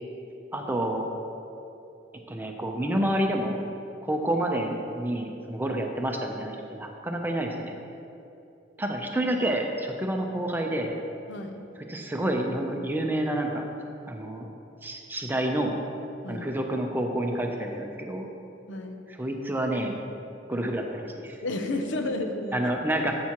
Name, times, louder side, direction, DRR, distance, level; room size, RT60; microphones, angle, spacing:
voice 1, 0.5-1.0 2.3-3.6 4.0-7.7 8.8-10.9 11.9-13.6 14.1-14.5 14.8-15.7 16.3-18.3 19.2-20.0 20.5-21.4 22.5-23.1, right 1 dB, 10° right, 2 dB, 0.7 m, -28 dB
voice 2, 11.3-11.7 16.2-16.5 18.7-19.0 21.4-22.7, left 2 dB, 80° left, 5 dB, 0.7 m, -31 dB
10.0 x 8.5 x 3.0 m, 2.7 s
head